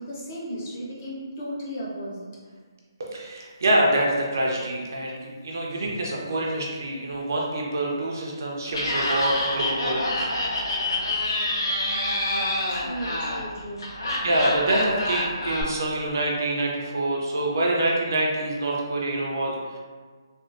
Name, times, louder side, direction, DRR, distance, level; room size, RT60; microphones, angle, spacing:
voice 1, 0.0-2.3 12.7-13.9 14.1-14.2, equal, 25° left, -6 dB, 0.6 m, -35 dB
voice 2, 3.0-10.3 14.2-19.8, right 1 dB, 45° right, -2 dB, 0.5 m, -26 dB
Laughter, 8.7-15.6, left 1 dB, 65° left, 0.8 m, -27 dB
3.5 x 2.4 x 2.5 m, 1.5 s
hypercardioid pair, 175°, 2 cm